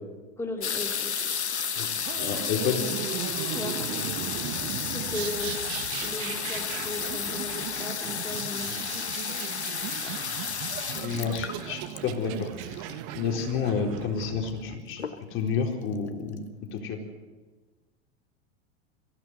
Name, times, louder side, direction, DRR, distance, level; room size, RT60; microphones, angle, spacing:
voice 1, 0.4-1.3 3.5-4.5 4.8-5.5 6.0-9.4 10.0-10.1, left 2 dB, 10° left, 0 dB, 2.4 m, -37 dB
sound 1, 0.6-13.1 14.0-14.1 14.3-14.7 15.0-15.5 16.1-16.2 16.4-16.5, left 7 dB, 85° left, 1.2 m, -32 dB
sound 2, 2.0-14.8, right 12 dB, 50° right, 1.4 m, -37 dB
voice 2, 2.2-3.1 11.0-12.9 13.1-16.4 16.7-17.0, left 6 dB, 40° left, 2 dB, 4.1 m, -30 dB
23.0 x 15.5 x 7.9 m, 1.3 s
hypercardioid pair, 95°, 32 cm